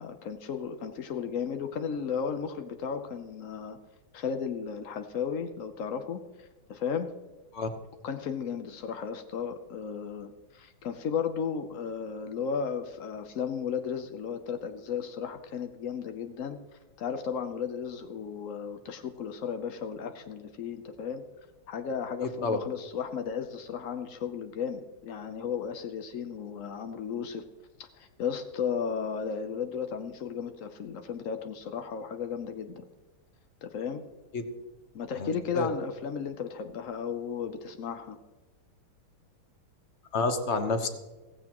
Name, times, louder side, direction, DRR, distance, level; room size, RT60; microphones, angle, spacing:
voice 1, 0.0-3.8 4.1-7.1 8.0-16.6 17.0-21.2 21.7-27.4 27.8-32.9 33.6-34.0 34.9-38.2, left 6 dB, 75° left, 8 dB, 0.7 m, -34 dB
voice 2, 35.2-35.7 40.1-40.9, left 3 dB, 40° left, 7 dB, 1.1 m, -28 dB
15.5 x 15.5 x 3.0 m, 1.2 s
omnidirectional pair, 2.3 m